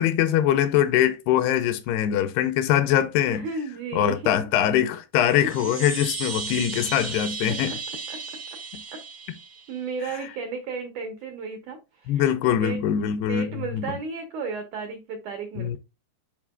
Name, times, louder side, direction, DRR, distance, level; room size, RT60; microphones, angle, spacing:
voice 1, 0.0-3.5 3.9-7.7 12.1-13.5 13.7-13.9 15.6-15.8, left 10 dB, 80° left, 2.5 m, -22 dB
voice 2, 3.3-4.4 5.4-5.7 7.5-7.8 8.1-8.2 8.9-9.0 9.7-12.8 13.3-15.8, right 4 dB, 85° right, 1.7 m, -34 dB
Chime, 5.2-9.9, right 4 dB, 65° right, 0.8 m, -35 dB
10.5 x 4.3 x 2.3 m
omnidirectional pair, 5.0 m